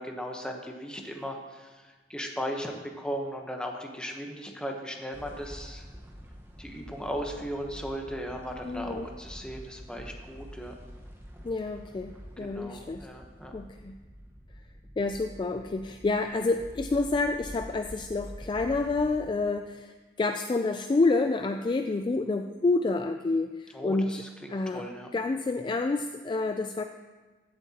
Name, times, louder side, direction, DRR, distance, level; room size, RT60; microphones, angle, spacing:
voice 1, 0.0-5.9 6.6-10.7 12.4-13.5 23.7-25.1, equal, 5° left, 2 dB, 0.9 m, -37 dB
sound 1, 5.1-19.2, equal, 10° right, 1.2 m, -46 dB
voice 2, 8.6-9.1 11.4-13.1 13.5-14.0 15.0-24.2 24.5-24.8 25.1-26.8, left 3 dB, 25° left, 6 dB, 0.3 m, -28 dB
15.5 x 7.7 x 2.9 m, 1.3 s
head